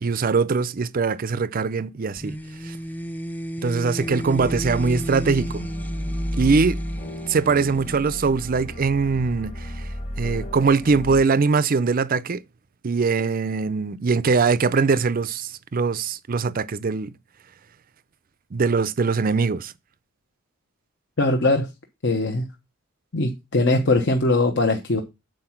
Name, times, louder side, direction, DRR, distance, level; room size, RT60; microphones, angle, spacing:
voice 1, 0.0-2.3 2.6-2.8 3.6-5.7 6.4-6.8 7.3-12.4 12.8-17.1 18.5-19.7, right 4 dB, 40° right, 0.5 m, -22 dB
sound 1, 2.2-8.8, equal, 10° left, 0.5 m, -33 dB
sound 2, 4.0-11.2, equal, 35° left, 1.5 m, -33 dB
voice 2, 21.2-21.7 22.0-22.4 23.1-25.0, left 2 dB, 55° left, 1.0 m, -21 dB
7.8 x 4.5 x 5.8 m
head